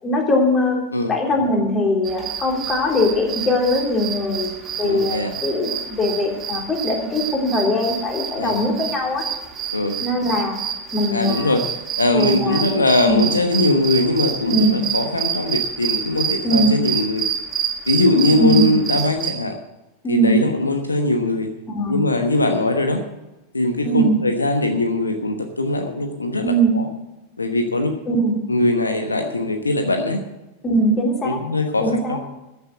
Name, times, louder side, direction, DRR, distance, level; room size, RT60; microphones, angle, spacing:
voice 1, 0.0-0.8 1.1-9.3 10.0-10.6 10.9-11.6 12.1-12.6 13.1-13.3 14.5-14.7 16.4-16.8 18.3-18.7 20.0-20.4 21.7-22.0 23.8-24.2 26.4-26.7 28.1-28.3 30.6-31.4 31.8-32.2, equal, 20° left, 0 dB, 3.5 m, -20 dB
sound 1, 2.0-19.3, right 8 dB, 25° right, 2.8 m, -27 dB
voice 2, 4.8-5.3 8.4-8.6 9.7-10.0 11.1-11.7 12.0-17.2 17.9-19.6 20.1-21.5 21.9-23.0 23.5-26.9 27.4-28.0 28.5-30.2 31.2-32.3, left 2 dB, 80° left, 6 dB, 1.1 m, -21 dB
14.0 x 7.2 x 8.0 m, 1.0 s
figure-of-eight pair, 90°, 0 cm